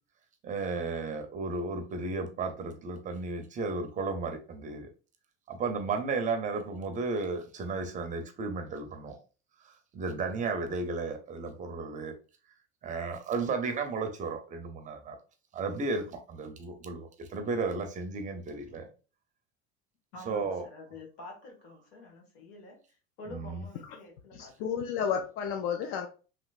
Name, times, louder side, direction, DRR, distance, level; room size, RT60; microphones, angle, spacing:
voice 1, 0.4-4.9 5.5-9.2 9.6-12.1 12.8-15.2 15.5-18.9 20.3-20.7 23.3-23.6, right 4 dB, 25° right, 6 dB, 0.5 m, -34 dB
voice 2, 20.1-22.8 23.2-24.9, left 2 dB, 90° left, 1 dB, 1.5 m, -48 dB
voice 3, 24.3-26.1, left 7 dB, 55° left, 5 dB, 0.5 m, -32 dB
3.1 x 2.9 x 2.3 m, 0.34 s
cardioid pair, 145°, 29 cm